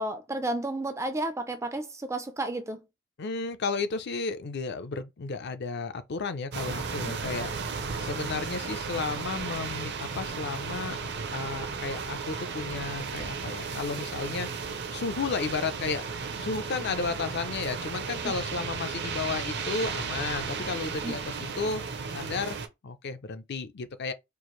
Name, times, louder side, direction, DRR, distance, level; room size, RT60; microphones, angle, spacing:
voice 1, 0.0-2.8 18.2-18.3 21.0-21.2, right 2 dB, 15° right, 0.4 m, -32 dB
voice 2, 3.2-7.5 8.0-11.0 11.3-14.7 14.9-21.8 22.1-22.6 22.8-24.1, left 4 dB, 50° left, 0.5 m, -33 dB
sound 1, 6.5-22.7, right 5 dB, 50° right, 0.6 m, -34 dB
4.5 x 2.5 x 3.0 m
head